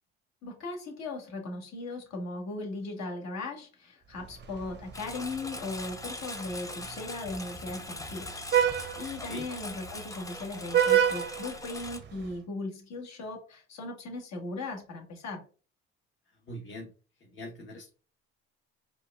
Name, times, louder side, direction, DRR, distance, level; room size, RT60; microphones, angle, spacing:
voice 1, 0.4-8.4 8.7-15.4, left 2 dB, 55° left, 2 dB, 1.4 m, -38 dB
Vehicle horn car horn honking, 4.2-12.3, right 9 dB, 35° right, 0.6 m, -31 dB
Engine, 4.9-12.0, left 2 dB, 10° left, 0.6 m, -41 dB
voice 2, 16.5-16.9 17.2-17.9, left 1 dB, 35° left, 0 dB, 1.0 m, -42 dB
4.4 x 2.4 x 2.3 m, 0.36 s
hypercardioid pair, 65°, 33 cm